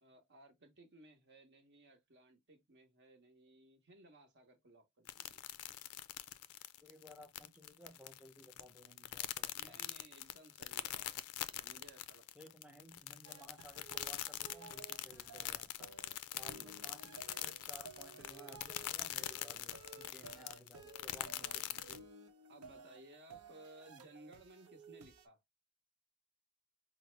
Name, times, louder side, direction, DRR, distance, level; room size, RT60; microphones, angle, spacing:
voice 1, 0.0-5.4 9.5-12.5 16.5-16.9 20.1-20.5 21.4-21.6 22.5-25.4, right 1 dB, 50° right, 0.9 m, -60 dB
sound 1, 5.1-22.0, left 13 dB, 90° left, 0.4 m, -43 dB
voice 2, 6.8-9.8 12.4-16.0 16.4-22.0, right 1 dB, 5° right, 0.6 m, -58 dB
sound 2, 13.2-25.2, right 4 dB, 90° right, 0.8 m, -56 dB
5.1 x 2.0 x 3.1 m
head